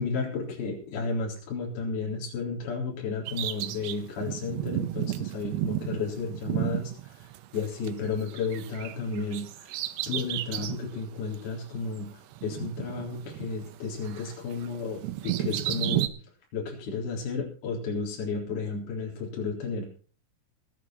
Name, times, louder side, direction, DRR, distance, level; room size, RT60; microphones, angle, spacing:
voice 1, 0.0-9.7 10.1-16.1 16.5-19.8, left 4 dB, 55° left, -1 dB, 5.6 m, -33 dB
Bird vocalization bird call bird song, 3.3-7.9 8.2-10.9 11.3-11.4 12.3-13.8 14.1-16.1, right 15 dB, 80° right, 3.0 m, -33 dB
19.5 x 7.7 x 5.9 m, 0.40 s
omnidirectional pair, 5.2 m